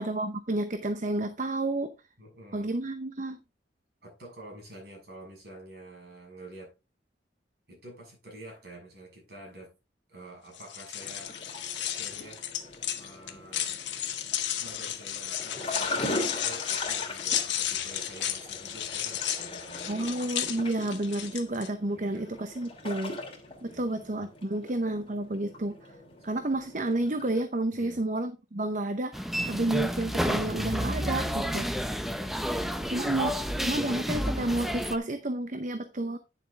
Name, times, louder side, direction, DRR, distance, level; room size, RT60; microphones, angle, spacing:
voice 1, 0.0-1.9 2.5-3.4 19.9-23.2 23.6-25.8 26.2-31.7 32.9-36.2, right 2 dB, 45° right, 0.8 m, -31 dB
voice 2, 2.2-2.7 4.0-6.7 7.7-9.7 10.1-11.4 11.9-12.4 12.9-13.8 14.6-20.2 21.9-22.3 23.7-24.2 26.1-26.3 27.7-28.0, right 1 dB, 60° right, 7.0 m, -48 dB
sound 1, 10.5-21.7, left 10 dB, 90° left, 1.3 m, -33 dB
sound 2, 11.0-27.4, left 2 dB, 30° left, 2.8 m, -40 dB
sound 3, 29.1-35.0, equal, ahead, 0.7 m, -30 dB
10.0 x 7.2 x 3.6 m
head